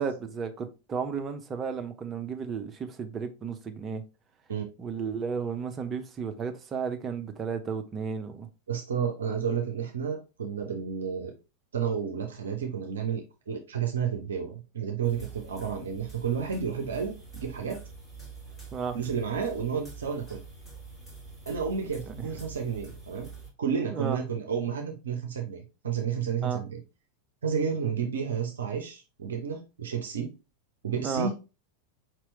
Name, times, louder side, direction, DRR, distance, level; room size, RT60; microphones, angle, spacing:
voice 1, 0.0-4.0 4.8-8.5 18.7-19.0 22.1-22.3 23.9-24.2 26.4-26.6 31.0-31.3, right 6 dB, 25° right, 0.6 m, -33 dB
voice 2, 8.7-11.3 11.7-17.8 18.9-20.4 21.5-23.3 23.6-26.8 27.4-30.3 30.8-31.3, right 7 dB, 65° right, 0.6 m, -31 dB
sound 1, 15.0-23.5, right 4 dB, 10° left, 1.9 m, -46 dB
4.6 x 3.0 x 3.1 m
figure-of-eight pair, 90°, 0 cm